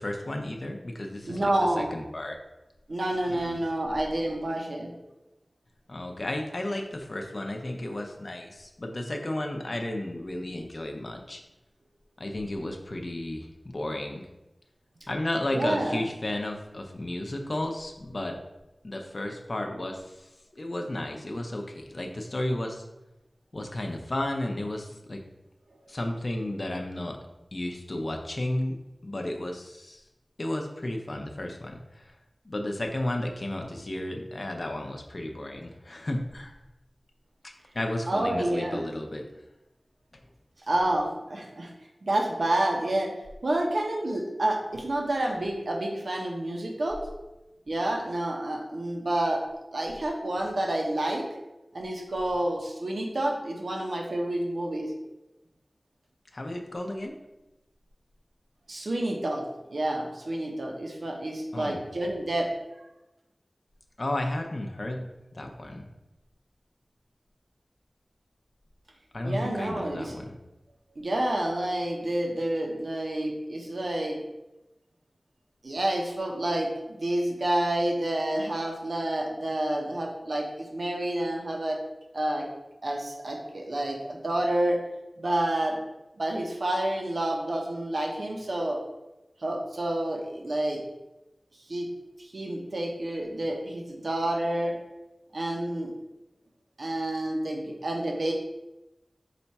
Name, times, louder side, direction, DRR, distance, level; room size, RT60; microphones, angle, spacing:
voice 1, 0.0-2.4 3.3-3.6 5.9-11.4 12.2-14.3 15.1-18.4 18.8-22.8 23.5-25.2 25.9-27.2 27.5-28.8 29.0-30.0 30.4-32.1 32.4-36.5 37.7-39.2 56.3-57.1 61.5-61.8 64.0-65.0 65.3-65.9 69.1-70.3, left 1 dB, 50° left, 3 dB, 0.6 m, -33 dB
voice 2, 1.3-1.9 2.9-4.9 15.5-16.0 38.1-38.8 40.7-41.7 42.0-43.1 43.4-47.0 47.7-49.4 49.7-51.2 51.7-54.9 58.7-59.4 59.7-62.5 69.2-70.2 71.0-74.2 75.6-81.8 82.1-82.5 82.8-84.8 85.2-85.8 86.2-88.8 89.4-90.8 91.7-91.9 92.2-94.7 95.3-95.9 96.8-98.3, right 1 dB, 70° right, 0 dB, 0.7 m, -29 dB
4.9 x 2.3 x 4.1 m, 0.96 s
wide cardioid pair, 75°, 0 cm